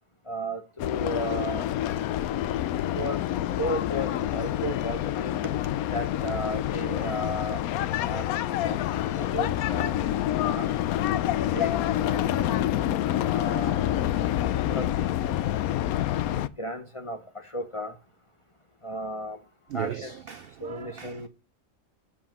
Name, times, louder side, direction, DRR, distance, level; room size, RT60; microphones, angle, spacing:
voice 1, 0.3-1.7 2.8-3.2 3.6-5.4 5.9-7.6 8.1-8.3 8.6-10.7 11.5-12.5 13.2-13.8 14.4-15.2 16.3-18.0 18.8-19.4 19.7-20.1 20.6-21.3, equal, 25° left, 0.8 m, -35 dB
sound 1, 0.8-16.5, left 12 dB, 80° left, 1.0 m, -27 dB
voice 2, 19.7-21.3, right 9 dB, 75° right, 0.5 m, -37 dB
7.6 x 5.5 x 5.3 m
omnidirectional pair, 1.5 m